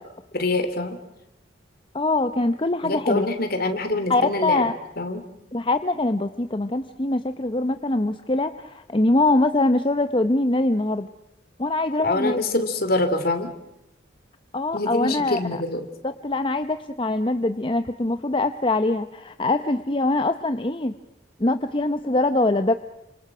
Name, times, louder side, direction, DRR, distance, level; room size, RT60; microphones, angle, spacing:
voice 1, 0.3-1.0 2.8-4.7 5.0-5.2 12.0-13.5 14.7-15.9, left 2 dB, 50° left, 8 dB, 3.1 m, -25 dB
voice 2, 1.9-3.3 4.1-4.7 5.5-11.1 11.6-12.4 14.5-15.6 16.0-20.9 21.4-22.7, left 2 dB, 25° left, 9 dB, 0.8 m, -23 dB
29.5 x 26.5 x 6.1 m, 0.89 s
head